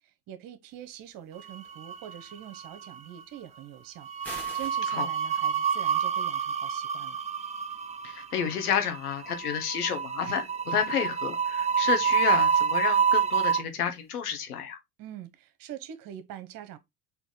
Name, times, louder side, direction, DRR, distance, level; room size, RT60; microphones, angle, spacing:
voice 1, 0.3-7.2 15.0-16.8, right 11 dB, 50° right, 0.9 m, -44 dB
sound 1, 1.5-2.3 2.6-2.8 4.0-13.6, right 7 dB, 15° right, 0.5 m, -27 dB
sound 2, 4.2-4.8, equal, 5° left, 1.5 m, -41 dB
voice 2, 8.0-14.8, left 8 dB, 90° left, 1.0 m, -30 dB
4.1 x 2.8 x 3.6 m
hypercardioid pair, 80°, 44 cm